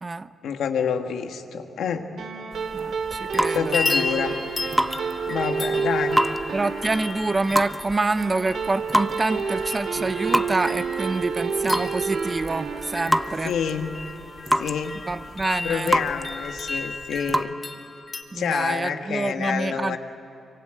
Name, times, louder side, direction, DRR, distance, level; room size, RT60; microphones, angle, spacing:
voice 1, 0.4-2.1 3.5-4.3 5.3-6.2 10.0-10.1 13.4-13.9 14.6-15.0 15.6-17.6 18.3-20.0, left 7 dB, 90° left, 6 dB, 1.6 m, -27 dB
sound 1, 2.2-14.9, right 5 dB, 75° right, 2.2 m, -30 dB
sound 2, 2.5-17.5, equal, 5° right, 0.8 m, -29 dB
voice 2, 2.7-3.8 6.5-13.5 15.1-15.9 18.3-20.0, right 3 dB, 30° right, 13 dB, 0.8 m, -27 dB
sound 3, 3.0-3.4 3.7-18.2, left 3 dB, 35° left, 2.5 m, -34 dB
25.0 x 24.0 x 9.1 m, 2.7 s
cardioid pair, 80°, 0 cm